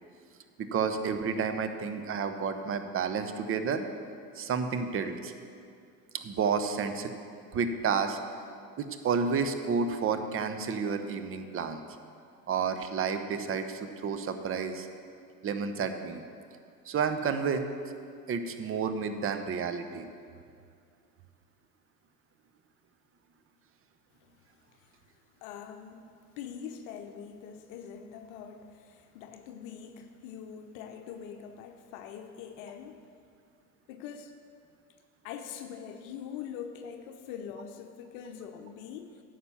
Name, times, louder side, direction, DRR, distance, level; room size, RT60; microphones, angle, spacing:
voice 1, 0.6-3.8 4.3-5.3 6.1-7.1 7.5-8.2 8.8-11.8 12.5-14.9 15.4-16.2 16.9-17.7 18.3-20.1, right 6 dB, 25° right, 8 dB, 0.8 m, -30 dB
voice 2, 25.4-26.1 26.4-33.0 33.9-34.3 35.2-39.2, left 8 dB, 55° left, 6 dB, 0.9 m, -43 dB
9.5 x 5.9 x 7.2 m, 2.3 s
hypercardioid pair, 75°, 49 cm